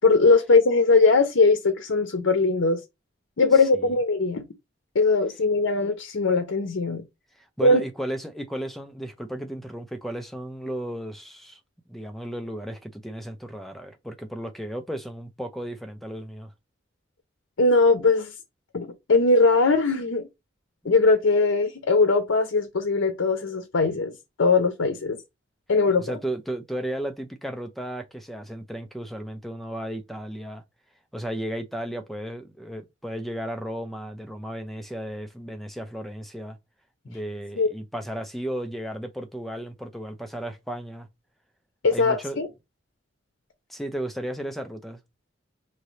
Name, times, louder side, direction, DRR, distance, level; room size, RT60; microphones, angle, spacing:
voice 1, 0.0-2.8 3.4-4.4 4.9-7.0 7.6-7.8 17.6-18.3 18.7-20.3 20.8-24.1 24.4-25.2 25.7-26.0 37.6-37.7 41.8-42.5, left 3 dB, 85° left, 0.7 m, -20 dB
voice 2, 3.5-3.9 7.6-11.6 11.9-16.5 26.0-30.6 31.1-36.6 37.1-41.1 41.9-42.4 43.7-45.0, right 1 dB, ahead, 0.5 m, -34 dB
5.1 x 2.8 x 3.2 m
head